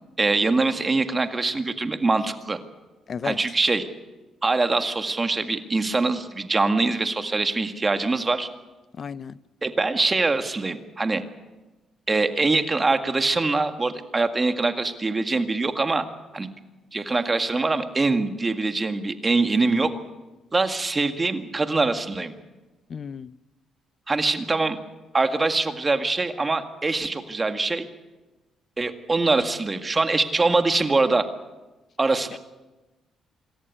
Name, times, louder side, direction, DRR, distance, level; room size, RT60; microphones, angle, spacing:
voice 1, 0.2-2.6 3.2-3.9 4.4-8.5 9.6-11.2 12.1-16.1 16.3-16.5 16.9-19.9 20.5-22.3 24.1-24.8 25.1-27.9 28.8-31.2 32.0-32.4, right 3 dB, 25° right, 7 dB, 1.9 m, -23 dB
voice 2, 8.9-9.4 22.9-23.3 32.3-32.4, left 6 dB, 50° left, 17 dB, 0.6 m, -33 dB
26.0 x 14.0 x 8.6 m, 1.1 s
cardioid pair, 90°, 0 cm